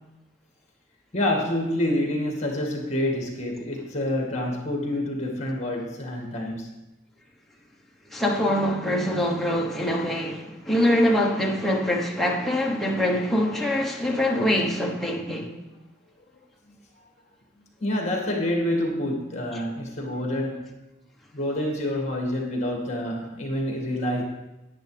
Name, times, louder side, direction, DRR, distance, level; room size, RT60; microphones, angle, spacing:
voice 1, 1.1-6.7 17.8-20.7 21.3-24.2, left 1 dB, 35° left, 2.0 m, -27 dB
voice 2, 8.1-15.5, left 1 dB, ahead, 1.1 m, -24 dB
10.5 x 9.5 x 3.4 m
head